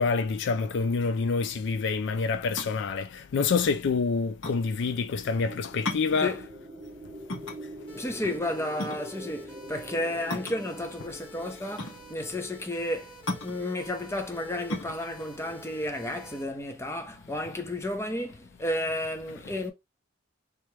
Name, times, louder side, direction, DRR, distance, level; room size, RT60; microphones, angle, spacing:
voice 1, 0.0-6.4, left 4 dB, 65° left, 0.4 m, -27 dB
sound 1, 2.6-16.8, left 2 dB, 85° left, 1.7 m, -38 dB
sound 2, 5.1-13.3, right 1 dB, 15° right, 0.8 m, -45 dB
sound 3, 7.9-16.4, right 1 dB, 30° left, 1.7 m, -49 dB
voice 2, 8.0-19.7, left 1 dB, 15° left, 0.8 m, -32 dB
3.4 x 3.0 x 3.2 m
head